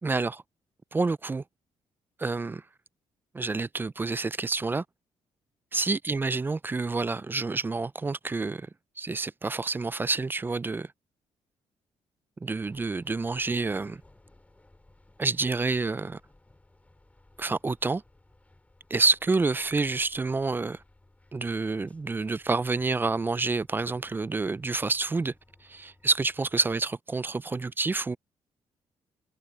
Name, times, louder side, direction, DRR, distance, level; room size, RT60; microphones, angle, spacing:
voice 1, 0.0-0.4 0.9-1.4 2.2-2.6 3.3-4.8 5.7-8.7 9.0-10.9 12.4-14.0 15.2-16.2 17.4-18.0 18.9-20.8 21.3-25.3 25.6-28.2, right 3 dB, 20° right, 0.3 m, -28 dB
sound 1, 12.6-26.9, left 2 dB, 15° left, 4.3 m, -60 dB
cardioid pair, 100°, 11 cm